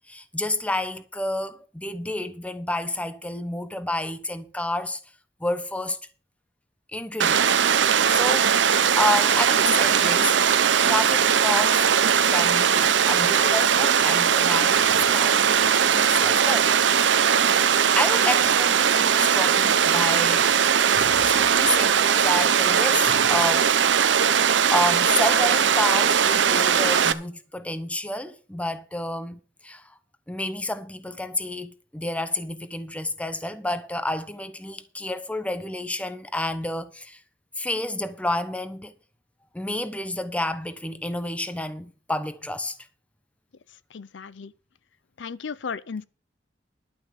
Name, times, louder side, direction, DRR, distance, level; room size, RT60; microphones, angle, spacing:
voice 1, 0.1-5.0 5.4-6.0 6.9-7.6 8.1-10.4 10.8-11.9 12.3-16.7 17.3-20.5 20.9-24.1 24.7-29.8 30.3-37.2 37.6-38.9 39.5-42.8, left 1 dB, 5° left, 0.8 m, -30 dB
Water, 7.2-27.1, right 7 dB, 75° right, 0.7 m, -20 dB
voice 2, 43.9-44.5 45.2-46.0, left 5 dB, 75° left, 0.6 m, -35 dB
11.5 x 5.4 x 8.1 m
head